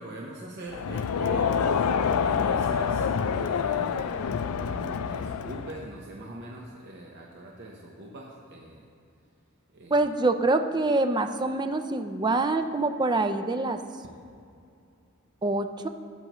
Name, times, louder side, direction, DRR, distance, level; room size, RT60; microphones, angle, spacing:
voice 1, 0.0-8.9 9.7-10.0, right 1 dB, 50° right, -2 dB, 0.9 m, -43 dB
Crowd, 0.7-5.9, left 6 dB, 75° left, 0.4 m, -27 dB
voice 2, 9.9-13.8 15.4-15.9, right 2 dB, 20° right, 8 dB, 0.4 m, -25 dB
13.5 x 8.5 x 3.0 m, 2.5 s
head